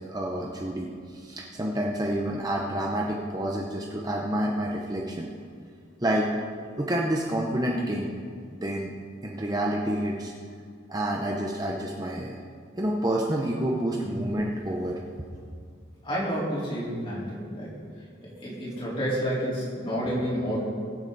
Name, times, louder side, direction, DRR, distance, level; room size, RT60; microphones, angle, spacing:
voice 1, 0.1-5.3 6.0-6.3 6.8-8.1 8.5-8.9 9.2-10.3 10.9-12.4 12.8-15.0, right 1 dB, 20° right, -2 dB, 0.9 m, -28 dB
voice 2, 16.0-17.7 18.2-20.6, equal, 25° left, -7 dB, 4.2 m, -30 dB
22.5 x 8.0 x 4.1 m, 2.1 s
head